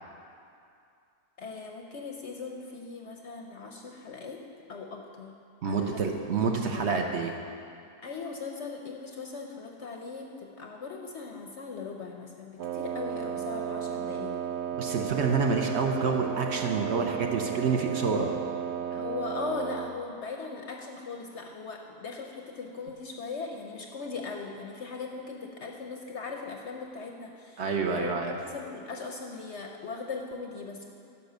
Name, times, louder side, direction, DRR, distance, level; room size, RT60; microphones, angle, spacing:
voice 1, 1.4-4.4 4.7-5.4 5.6-6.0 6.7-7.0 8.0-14.4 18.9-30.9, left 4 dB, 60° left, 2 dB, 0.8 m, -39 dB
voice 2, 5.6-7.3 14.8-18.3 27.6-28.3, right 5 dB, 55° right, 3 dB, 0.8 m, -28 dB
Wind instrument woodwind instrument, 12.6-20.0, right 9 dB, 85° right, 0.6 m, -34 dB
11.5 x 5.3 x 6.7 m, 2.5 s
omnidirectional pair, 1.7 m